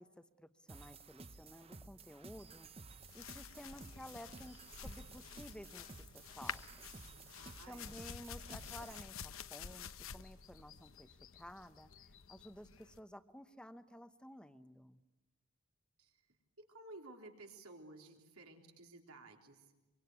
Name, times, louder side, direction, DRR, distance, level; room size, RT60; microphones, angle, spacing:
voice 1, 0.0-2.7 3.1-6.9 7.7-11.9 12.3-15.0, equal, 5° left, 11 dB, 0.8 m, -54 dB
sound 1, 0.7-9.0, right 3 dB, 25° right, 0.9 m, -55 dB
sound 2, 3.0-13.0, left 7 dB, 70° left, 0.9 m, -50 dB
voice 2, 7.3-8.0 16.0-16.2 16.6-19.7, right 2 dB, 85° right, 2 dB, 3.7 m, -55 dB
25.5 x 24.0 x 9.7 m, 1.1 s
head